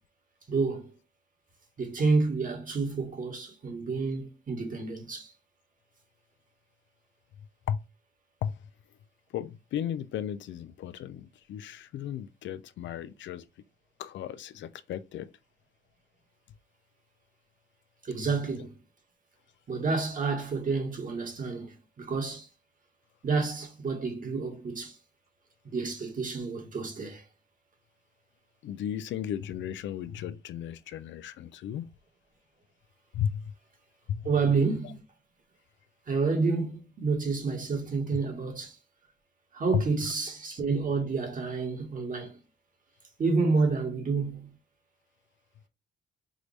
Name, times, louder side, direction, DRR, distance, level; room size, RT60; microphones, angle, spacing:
voice 1, 0.5-1.0 1.8-5.3 18.0-18.7 19.7-22.5 23.2-25.0 25.7-27.2 34.2-35.0 36.1-38.8 39.5-42.4 43.2-44.6, right 4 dB, 40° right, 1.6 m, -29 dB
voice 2, 9.3-13.4 14.0-15.3 28.6-31.8 33.1-33.5 34.1-34.3 34.8-34.9 39.7-39.8, left 9 dB, 70° left, 0.5 m, -34 dB
4.8 x 2.6 x 3.2 m
cardioid pair, 90°, 20 cm